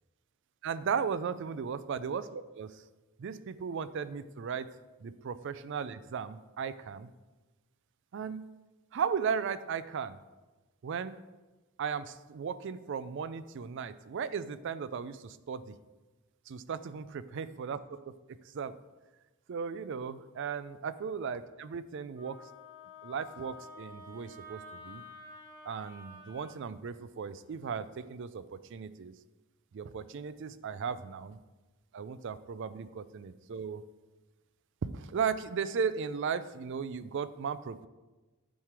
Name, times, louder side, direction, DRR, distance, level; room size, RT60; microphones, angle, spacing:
voice 1, 0.6-2.8 3.2-4.7 5.2-7.1 8.1-8.4 8.9-10.2 10.8-11.2 11.8-15.7 16.5-18.1 18.5-18.7 19.5-22.4 23.0-25.0 25.7-28.4 28.7-29.1 29.7-31.4 31.9-33.8 34.9-37.9, right 6 dB, 55° right, 14 dB, 0.3 m, -36 dB
Wind instrument woodwind instrument, 22.2-26.6, left 2 dB, 15° right, 1.4 m, -50 dB
8.9 x 3.2 x 6.0 m, 1.2 s
head